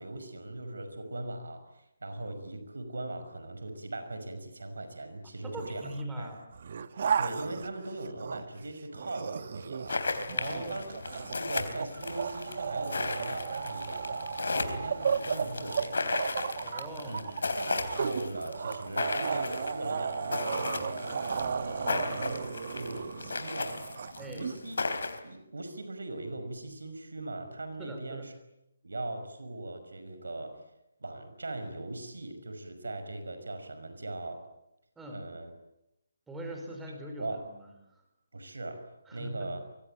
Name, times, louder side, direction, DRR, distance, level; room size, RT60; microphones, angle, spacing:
voice 1, 0.0-6.3 7.2-10.9 11.2-16.2 17.0-22.4 22.7-24.8 25.2-28.3 28.8-30.6 31.0-34.4 35.1-35.5 37.2-37.5 38.3-39.6, right 2 dB, 80° right, 8 dB, 5.7 m, -40 dB
voice 2, 5.4-6.5 10.3-10.7 16.6-17.4 21.8-22.1 24.2-24.5 27.8-28.2 35.0-35.3 36.3-38.0 39.1-39.6, right 1 dB, 5° right, 2 dB, 5.6 m, -42 dB
sound 1, 5.6-6.0 6.5-8.6 9.0-24.6, right 6 dB, 50° right, 1.6 m, -35 dB
sound 2, 9.9-25.2, left 3 dB, 70° left, 3.7 m, -36 dB
25.0 x 23.5 x 8.9 m, 0.85 s
figure-of-eight pair, 150°, 0 cm